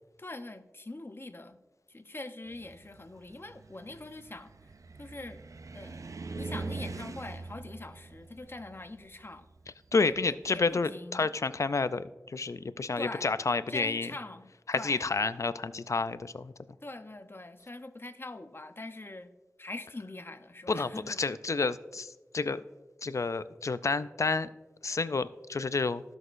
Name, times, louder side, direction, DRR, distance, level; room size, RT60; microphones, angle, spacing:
voice 1, 0.2-1.6 1.9-4.5 5.0-5.4 5.7-6.0 6.3-9.5 10.0-11.3 13.0-13.3 13.7-15.0 16.8-19.3 19.6-21.2, left 2 dB, 45° left, 9 dB, 0.7 m, -43 dB
Car, 2.5-10.7, right 3 dB, 85° right, 0.4 m, -43 dB
voice 2, 9.9-14.1 14.7-16.5 20.7-22.6 23.0-24.5 24.8-26.0, left 4 dB, 75° left, 15 dB, 0.3 m, -30 dB
17.5 x 6.4 x 2.5 m, 1.2 s
wide cardioid pair, 40°, 5 cm